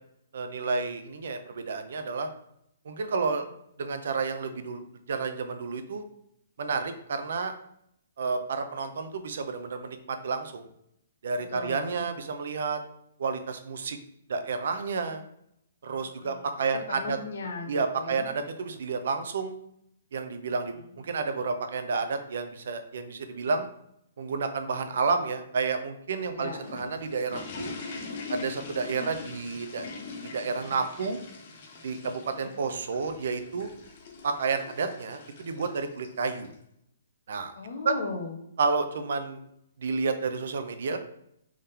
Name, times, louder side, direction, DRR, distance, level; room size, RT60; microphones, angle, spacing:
voice 1, 0.3-2.3 2.9-3.4 3.8-4.8 5.1-6.0 6.6-7.5 8.2-10.7 11.2-12.8 13.2-14.0 14.3-15.2 15.8-17.2 17.7-19.6 20.1-23.7 24.2-27.7 28.3-29.9 30.3-31.2 31.8-33.7 34.2-36.5 37.3-37.5 37.8-37.9 38.6-39.4 39.8-41.0, right 4 dB, 55° right, 8 dB, 0.5 m, -30 dB
voice 2, 11.5-12.1 16.0-16.5 16.9-18.3 26.3-26.6 32.4-32.6 37.5-38.4, left 3 dB, 65° left, 2 dB, 0.9 m, -37 dB
sound 1, 26.4-36.5, left 4 dB, 35° left, 0.7 m, -42 dB
3.6 x 3.5 x 2.8 m, 0.75 s
hypercardioid pair, 175°, 0 cm